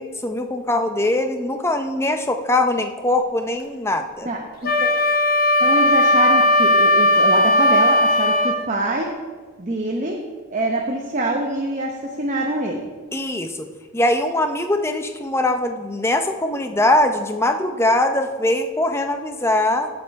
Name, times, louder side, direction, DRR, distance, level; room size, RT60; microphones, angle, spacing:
voice 1, 0.0-4.3 13.1-13.7 13.9-19.9, left 1 dB, 10° left, 6 dB, 0.6 m, -21 dB
voice 2, 4.2-4.9 5.6-9.1 9.6-10.2 10.5-12.9, right 2 dB, 35° right, 1 dB, 0.8 m, -25 dB
Wind instrument woodwind instrument, 4.6-8.6, left 1 dB, 45° left, 1.0 m, -16 dB
15.5 x 5.3 x 4.7 m, 1.5 s
head